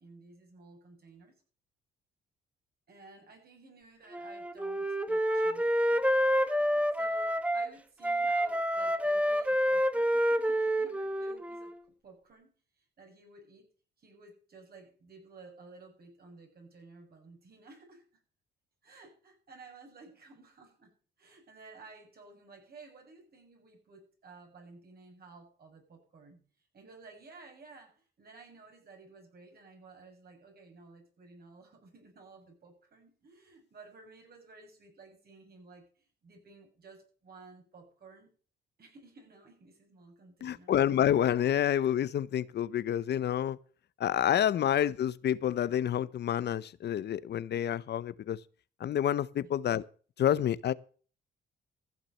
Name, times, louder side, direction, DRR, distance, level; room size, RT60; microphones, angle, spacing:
voice 1, 0.0-1.4 2.9-6.1 6.3-11.8 12.0-13.7 14.0-18.0 18.8-26.4 26.7-38.3 38.8-40.7 49.4-49.5, right 3 dB, 50° right, 6.7 m, -54 dB
Wind instrument woodwind instrument, 4.1-7.7 8.0-11.8, equal, 5° right, 1.1 m, -28 dB
voice 2, 40.4-43.6 44.0-48.4 48.8-49.8 50.2-50.7, left 10 dB, 60° left, 0.7 m, -28 dB
15.0 x 7.4 x 6.7 m
cardioid pair, 90°, 20 cm